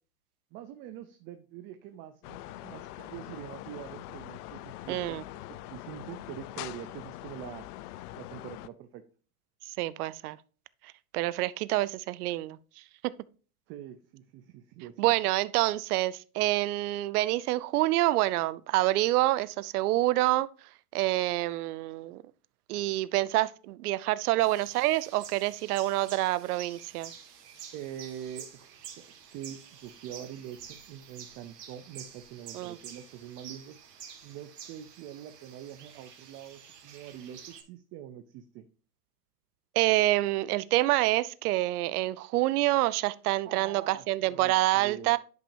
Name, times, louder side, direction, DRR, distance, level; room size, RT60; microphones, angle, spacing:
voice 1, 0.5-7.7 8.1-9.0 13.7-15.1 27.7-33.8 34.2-38.6 43.4-45.1, right 10 dB, 30° right, 0.4 m, -44 dB
sound 1, 2.2-8.7, left 15 dB, 75° left, 0.5 m, -43 dB
voice 2, 4.9-5.2 9.7-10.4 11.1-12.8 15.0-20.5 20.9-22.2 22.7-27.1 32.5-32.8 39.7-45.2, right 17 dB, 75° right, 0.6 m, -27 dB
sound 2, 24.4-37.6, right 8 dB, 90° right, 2.0 m, -49 dB
10.5 x 5.5 x 2.6 m
supercardioid pair, 130°, 46 cm